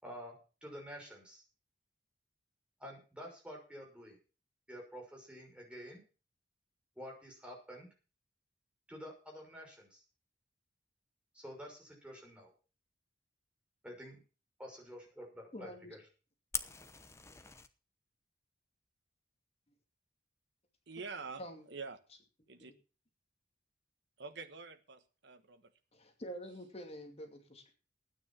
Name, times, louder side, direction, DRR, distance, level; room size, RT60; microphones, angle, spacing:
voice 1, 0.0-1.4 2.8-4.2 4.7-6.0 7.0-7.9 8.9-10.0 11.3-12.5 13.8-14.2 14.6-16.0, equal, 5° right, 0 dB, 5.8 m, -49 dB
voice 2, 15.5-16.0 21.4-21.6 22.6-22.7 25.9-27.7, equal, 35° left, 4 dB, 2.5 m, -47 dB
Fire, 16.5-17.7, left 5 dB, 15° left, 0.9 m, -41 dB
voice 3, 20.9-22.0 22.5-22.7 24.2-25.7, right 4 dB, 70° right, 8 dB, 1.3 m, -46 dB
12.5 x 9.6 x 5.9 m, 0.35 s
head